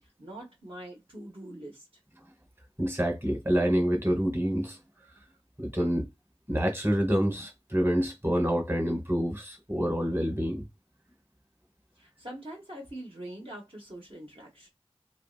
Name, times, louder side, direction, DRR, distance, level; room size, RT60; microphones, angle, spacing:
voice 1, 0.0-1.9 12.0-14.7, right 1 dB, 55° right, 1.0 m, -44 dB
voice 2, 2.8-4.8 5.6-6.1 6.5-10.6, equal, 20° right, 1.1 m, -27 dB
2.8 x 2.8 x 2.4 m
wide cardioid pair, 40°, 11 cm